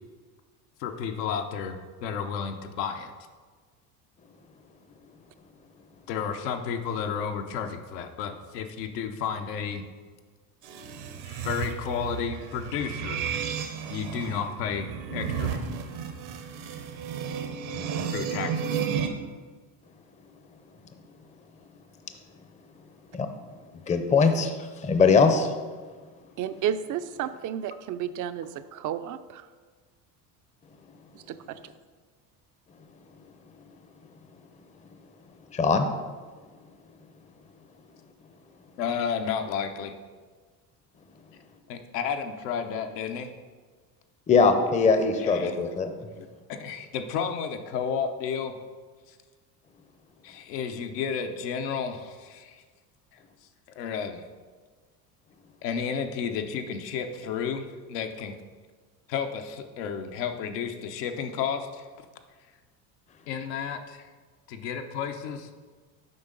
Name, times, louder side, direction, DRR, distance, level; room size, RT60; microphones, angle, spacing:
voice 1, 0.8-3.1 6.1-9.8 11.2-13.3 13.9-14.9 15.1-15.6 18.1-18.8 38.8-39.9 41.7-43.3 45.2-45.7 46.2-48.6 49.1-49.2 50.2-52.6 53.7-54.2 55.6-58.3 59.1-61.9 63.3-64.1 64.5-65.5, left 7 dB, 80° left, 6 dB, 0.9 m, -32 dB
sound 1, 10.6-19.1, right 7 dB, 70° right, 1.0 m, -33 dB
voice 2, 23.9-24.5 24.8-25.5 35.5-35.9 44.3-45.9, left 4 dB, 15° left, 7 dB, 0.6 m, -21 dB
voice 3, 26.4-29.5 31.1-31.6, right 9 dB, 40° right, 12 dB, 0.5 m, -32 dB
7.8 x 5.3 x 3.8 m, 1.5 s
hypercardioid pair, 80°, 48 cm